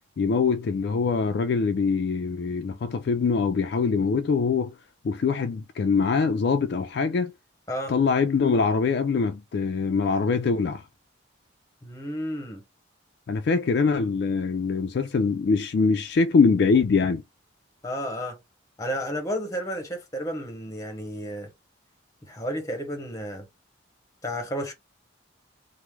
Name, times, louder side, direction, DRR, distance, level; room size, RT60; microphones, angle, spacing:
voice 1, 0.2-4.7 5.0-7.3 7.9-10.8 13.3-17.2, left 5 dB, 55° left, 0.3 m, -23 dB
voice 2, 11.8-12.6 17.8-18.4 18.8-21.5 22.3-23.5 24.2-24.7, equal, 15° left, 0.7 m, -32 dB
3.0 x 2.0 x 3.4 m
head